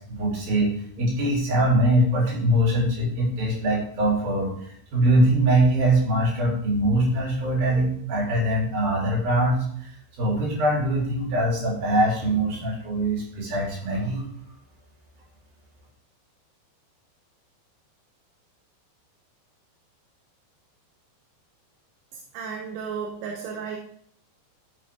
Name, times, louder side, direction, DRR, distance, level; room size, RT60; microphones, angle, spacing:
voice 1, 0.1-4.5 4.9-9.9 10.2-14.2, right 1 dB, 55° right, -3 dB, 4.5 m, -22 dB
voice 2, 22.3-23.8, right 6 dB, 75° right, 1 dB, 2.9 m, -33 dB
12.5 x 5.1 x 3.5 m, 0.64 s
omnidirectional pair, 5.1 m